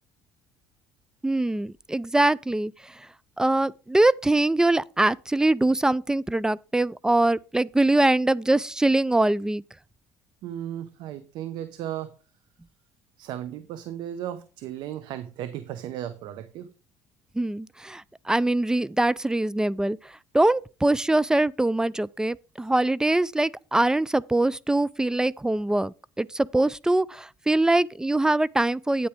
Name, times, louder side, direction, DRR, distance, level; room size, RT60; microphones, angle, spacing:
voice 1, 1.2-3.1 3.4-9.6 17.3-29.1, right 2 dB, 10° right, 0.3 m, -23 dB
voice 2, 10.4-12.1 13.2-16.7, right 11 dB, 75° right, 0.8 m, -35 dB
9.2 x 8.7 x 3.5 m
supercardioid pair, 90°, 8 cm